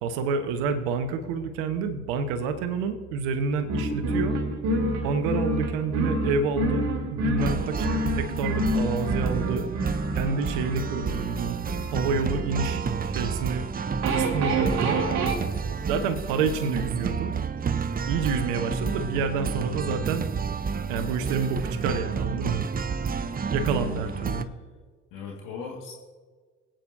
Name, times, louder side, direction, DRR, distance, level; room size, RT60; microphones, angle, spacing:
voice 1, 0.0-4.4 5.0-6.8 7.1-7.9 8.1-9.6 10.1-11.6 11.9-13.6 14.1-15.1 15.9-17.3 18.1-20.3 20.9-22.7 23.5-24.5, right 4 dB, 70° right, 9 dB, 1.2 m, -28 dB
sound 1, 3.7-15.3, right 1 dB, 50° right, 2.8 m, -28 dB
sound 2, 7.4-24.4, right 5 dB, 25° right, 0.7 m, -30 dB
voice 2, 23.6-24.5 25.1-25.9, left 5 dB, 65° left, -1 dB, 2.0 m, -40 dB
25.0 x 9.0 x 2.7 m, 1.5 s
figure-of-eight pair, 50°, 35 cm